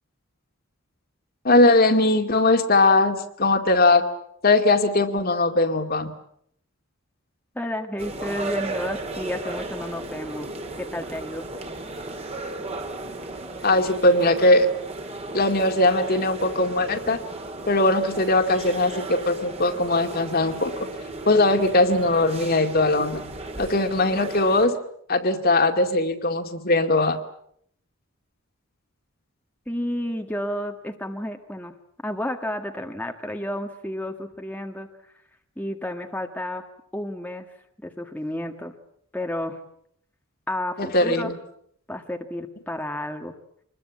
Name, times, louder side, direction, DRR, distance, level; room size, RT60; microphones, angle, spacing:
voice 1, 1.4-4.1 4.4-6.1 13.6-14.7 15.3-17.2 17.7-20.7 21.3-23.3 23.6-24.8 25.1-27.2 40.8-41.4, left 2 dB, 45° left, 6 dB, 2.3 m, -20 dB
voice 2, 7.5-10.5 10.8-11.5 29.7-31.7 32.0-34.9 35.6-36.6 36.9-37.5 37.8-38.7 39.1-39.6 40.5-41.3 41.9-43.3, left 1 dB, 10° left, 3 dB, 1.6 m, -31 dB
sound 1, 8.0-24.7, right 2 dB, 30° right, 2.8 m, -35 dB
26.5 x 21.5 x 8.6 m, 0.68 s
head